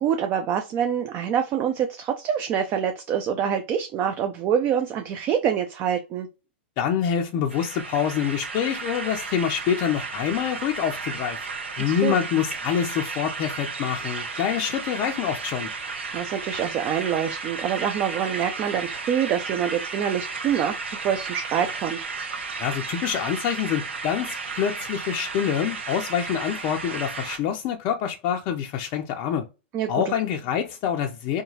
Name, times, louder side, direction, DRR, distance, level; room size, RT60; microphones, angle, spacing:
voice 1, 0.0-6.3 11.8-12.1 16.1-22.0 29.7-30.1, right 8 dB, 35° right, 0.4 m, -26 dB
voice 2, 6.8-11.4 11.8-15.7 22.6-29.5 29.9-31.4, left 8 dB, 40° left, 0.4 m, -26 dB
sound 1, 7.5-27.4, right 4 dB, 85° right, 0.6 m, -33 dB
2.8 x 2.3 x 2.7 m
hypercardioid pair, 110°, 6 cm